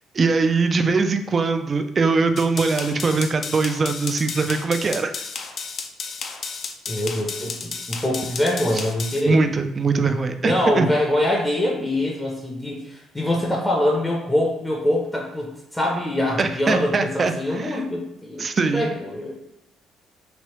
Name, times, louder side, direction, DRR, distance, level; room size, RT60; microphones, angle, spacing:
voice 1, 0.1-5.1 8.7-8.8 9.2-10.9 16.4-17.8 18.4-18.9, right 4 dB, 35° right, 8 dB, 0.3 m, -22 dB
sound 1, 2.4-9.2, left 5 dB, 50° left, 0.4 m, -33 dB
voice 2, 6.9-9.5 10.4-18.5 18.7-19.3, left 1 dB, 10° left, -2 dB, 0.6 m, -24 dB
3.2 x 2.6 x 2.9 m, 0.88 s
cardioid pair, 100°, 0 cm